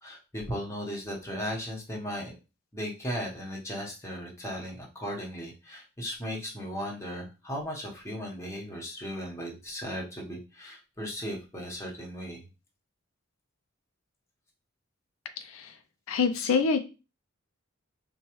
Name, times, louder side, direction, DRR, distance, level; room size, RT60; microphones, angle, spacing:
voice 1, 0.0-2.3 2.7-12.4, equal, 15° left, -2 dB, 1.0 m, -36 dB
voice 2, 15.4-15.7 16.1-16.8, left 5 dB, 80° left, 9 dB, 0.4 m, -26 dB
4.4 x 2.2 x 3.0 m, 0.30 s
head